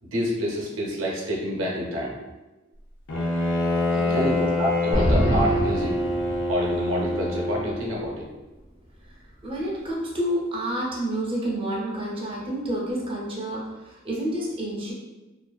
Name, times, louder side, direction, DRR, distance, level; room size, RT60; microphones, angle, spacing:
voice 1, 0.0-2.2 4.1-5.9 6.5-8.3, equal, 85° right, -2 dB, 0.6 m, -28 dB
Bowed string instrument, 3.1-8.0, left 1 dB, 85° left, 0.5 m, -26 dB
voice 2, 3.9-4.5 9.0-14.9, right 1 dB, 30° right, -4 dB, 0.5 m, -29 dB
sound 1, 4.9-6.8, equal, 50° left, 0.7 m, -24 dB
2.4 x 2.3 x 2.2 m, 1.1 s
head